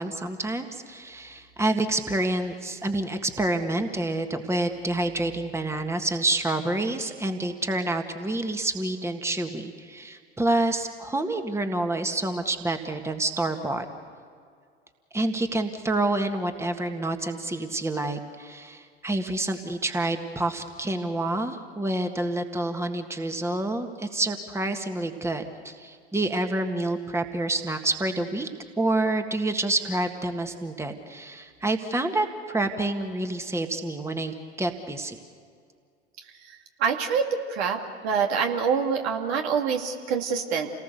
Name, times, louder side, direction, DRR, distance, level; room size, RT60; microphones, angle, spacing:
voice 1, 0.0-13.9 15.1-28.5 28.8-35.2, right 2 dB, 10° right, 6 dB, 1.8 m, -28 dB
voice 2, 36.8-40.7, right 6 dB, 65° right, 3 dB, 2.4 m, -26 dB
29.0 x 19.0 x 6.9 m, 2.2 s
figure-of-eight pair, 80°, 34 cm